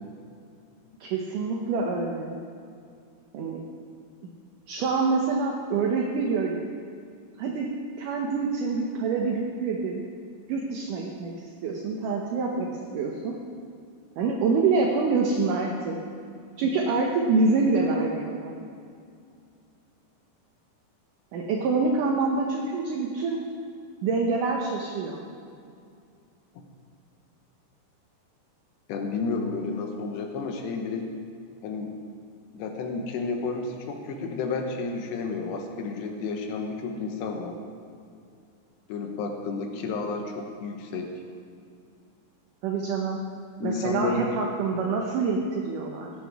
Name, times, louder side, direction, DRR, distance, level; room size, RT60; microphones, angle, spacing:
voice 1, 1.0-2.4 3.3-3.6 4.7-6.6 7.4-7.7 8.0-10.0 10.5-13.4 14.2-16.0 16.6-18.6 21.3-23.4 24.0-25.2 42.6-43.2 43.6-46.1, right 4 dB, 75° right, 0 dB, 1.9 m, -26 dB
voice 2, 28.9-31.1 31.6-31.9 32.5-37.6 38.9-41.1 43.6-44.3, left 4 dB, 80° left, 3 dB, 3.2 m, -31 dB
16.5 x 10.5 x 3.5 m, 2.3 s
omnidirectional pair, 4.9 m